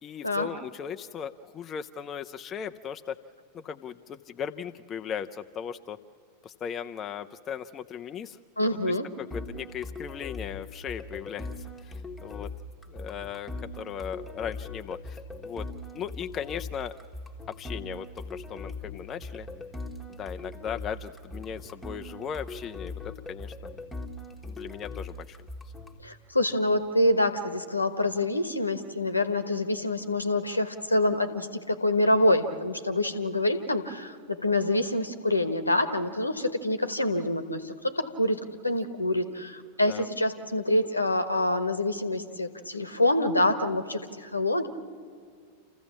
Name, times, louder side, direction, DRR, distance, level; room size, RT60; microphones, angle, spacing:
voice 1, 0.0-3.2 3.5-6.0 6.4-8.4 8.9-11.5 11.8-12.5 12.9-15.7 15.9-16.9 17.6-19.5 20.2-23.0 23.3-23.5 24.4-25.4 39.9-40.1, left 8 dB, 25° left, 7 dB, 0.6 m, -37 dB
voice 2, 8.6-9.1 26.0-44.7, left 1 dB, 85° left, 10 dB, 1.3 m, -26 dB
sound 1, 9.3-26.0, left 2 dB, 10° left, 1.5 m, -40 dB
29.0 x 15.0 x 7.2 m, 2.2 s
figure-of-eight pair, 90°, 0 cm